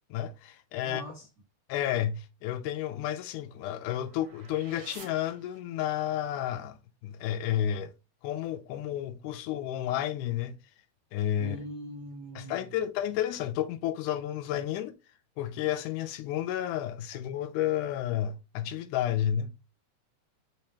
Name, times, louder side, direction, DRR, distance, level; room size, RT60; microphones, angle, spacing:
voice 1, 0.1-1.0 1.7-6.8 7.0-7.9 8.2-10.6 11.1-11.6 12.4-15.0 15.4-19.5, left 11 dB, 85° left, 2.1 m, -31 dB
voice 2, 0.8-1.3 11.4-12.8, right 1 dB, 75° right, 0.9 m, -42 dB
sound 1, 2.7-6.1, right 5 dB, 55° right, 1.9 m, -53 dB
5.5 x 3.2 x 2.8 m
omnidirectional pair, 3.5 m